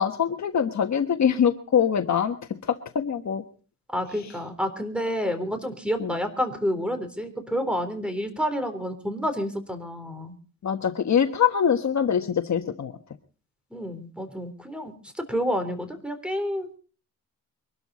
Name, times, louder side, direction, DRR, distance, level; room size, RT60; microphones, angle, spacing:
voice 1, 0.0-2.3 2.7-3.4 6.0-6.1 10.6-12.9, left 8 dB, 55° left, 6 dB, 1.4 m, -23 dB
voice 2, 3.9-10.3 13.7-16.8, equal, 5° right, 8 dB, 3.6 m, -29 dB
24.0 x 12.5 x 4.2 m, 0.39 s
cardioid pair, 120°, 34 cm